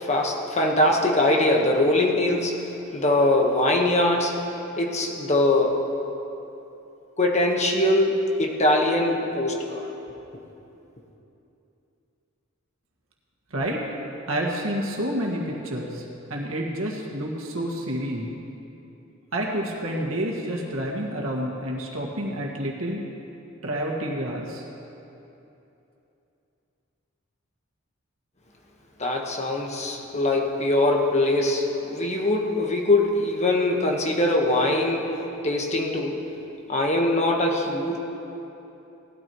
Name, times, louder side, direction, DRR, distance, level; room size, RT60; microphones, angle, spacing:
voice 1, 0.0-2.7 2.9-4.4 4.8-5.8 7.2-9.8 29.0-35.2 35.4-36.2 36.7-38.0, left 1 dB, 35° left, 0 dB, 1.3 m, -22 dB
voice 2, 13.5-13.8 14.3-16.1 16.3-18.4 19.3-23.0 23.6-24.6, right 1 dB, 85° right, -2 dB, 1.8 m, -29 dB
18.5 x 12.5 x 3.1 m, 2.9 s
head